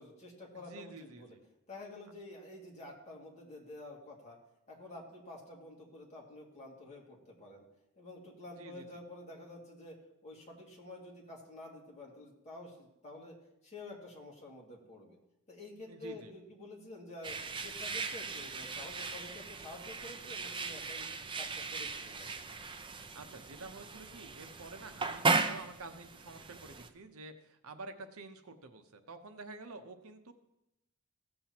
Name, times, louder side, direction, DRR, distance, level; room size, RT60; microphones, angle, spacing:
voice 1, 0.0-1.4 1.7-4.4 4.7-7.6 8.0-10.0 10.2-13.3 13.6-15.2 15.5-21.1 21.4-22.5, left 2 dB, 30° left, -2 dB, 2.2 m, -49 dB
voice 2, 0.5-1.4 8.6-8.8 15.9-16.3 23.1-30.3, right 3 dB, 75° right, 8 dB, 0.8 m, -49 dB
sound 1, 17.2-26.9, right 3 dB, 25° right, 0.5 m, -37 dB
16.0 x 7.7 x 2.9 m, 0.88 s
head